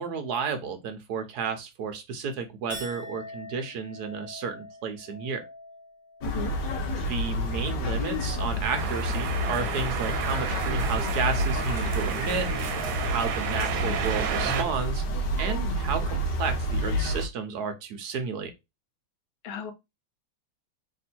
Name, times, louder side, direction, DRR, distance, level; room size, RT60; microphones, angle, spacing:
voice 1, 0.0-5.4 7.1-12.5 13.0-15.0 15.4-18.5, right 5 dB, 60° right, 1.1 m, -32 dB
Chink clink, 2.7-9.3 9.6-10.2, left 1 dB, 30° left, 1.4 m, -46 dB
voice 2, 6.2-6.6 19.4-19.7, left 7 dB, 80° left, 1.6 m, -35 dB
sound 1, 6.2-17.3, equal, 65° left, 1.4 m, -29 dB
sound 2, 8.8-14.6, right 7 dB, 80° right, 1.4 m, -31 dB
3.6 x 2.7 x 4.2 m
omnidirectional pair, 2.3 m